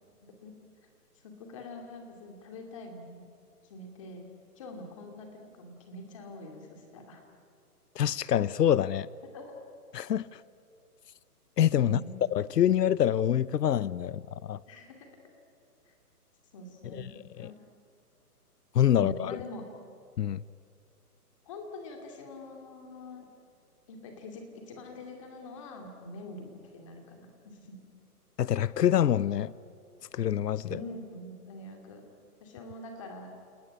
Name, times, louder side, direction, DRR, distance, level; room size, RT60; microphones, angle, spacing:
voice 1, 0.2-0.5 1.2-3.2 3.7-4.3 4.6-7.2 9.3-9.6 11.8-12.1 14.7-15.1 15.8-15.9 16.5-17.6 18.9-19.6 21.4-23.3 23.9-27.7 30.6-32.0 32.4-33.3, left 1 dB, 20° left, 2.5 m, -44 dB
voice 2, 8.0-9.1 9.9-10.4 11.6-12.0 12.3-14.6 16.9-17.1 17.4-17.5 18.7-19.4 20.2-20.4 28.4-29.5 30.1-30.7, left 10 dB, 85° left, 0.7 m, -26 dB
29.0 x 18.5 x 10.0 m
hypercardioid pair, 175°, 47 cm